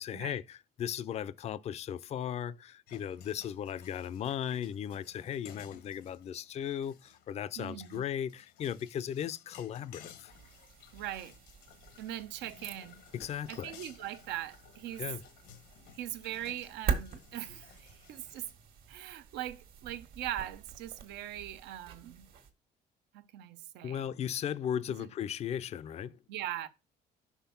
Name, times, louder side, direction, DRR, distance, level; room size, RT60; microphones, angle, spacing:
voice 1, 0.0-10.3 13.1-13.7 15.0-15.2 23.8-26.2, left 9 dB, 40° left, 0.4 m, -37 dB
sound 1, 2.9-18.5, left 8 dB, 90° left, 1.1 m, -57 dB
voice 2, 7.6-8.0 10.9-11.3 12.0-13.0 13.5-15.1 15.9-18.5 18.9-22.3 23.1-24.1 24.9-25.1 26.3-26.7, right 12 dB, 85° right, 0.6 m, -41 dB
sound 2, 10.3-22.5, right 6 dB, 65° right, 1.5 m, -43 dB
5.8 x 3.5 x 5.8 m
cardioid pair, 110°, 17 cm